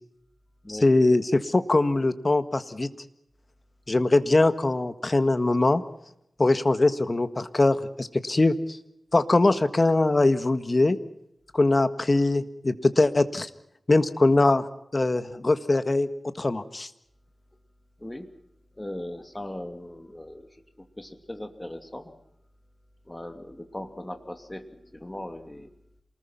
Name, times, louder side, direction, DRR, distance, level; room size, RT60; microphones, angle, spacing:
voice 1, 0.7-2.9 3.9-5.8 6.4-8.5 9.1-11.0 11.5-13.5 13.9-14.6 14.9-16.1 16.4-16.9, left 2 dB, 35° left, 11 dB, 1.6 m, -22 dB
voice 2, 18.8-20.5 21.0-22.1 23.1-25.7, left 1 dB, 20° left, 7 dB, 2.8 m, -38 dB
28.0 x 20.0 x 5.9 m, 0.78 s
wide cardioid pair, 80°, 0 cm